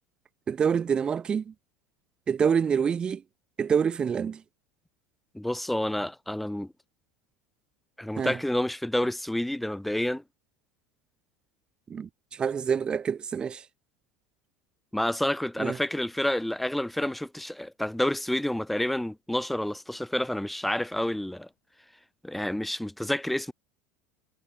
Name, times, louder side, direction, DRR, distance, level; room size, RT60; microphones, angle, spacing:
voice 1, 0.5-1.5 2.3-3.2 3.6-4.4 8.2-8.4 11.9-13.6 15.6-15.8, right 7 dB, 20° right, 2.3 m, -26 dB
voice 2, 5.3-6.7 8.0-10.2 14.9-21.5 22.2-23.5, left 1 dB, ahead, 4.3 m, -29 dB
supercardioid pair, 170°, 5 cm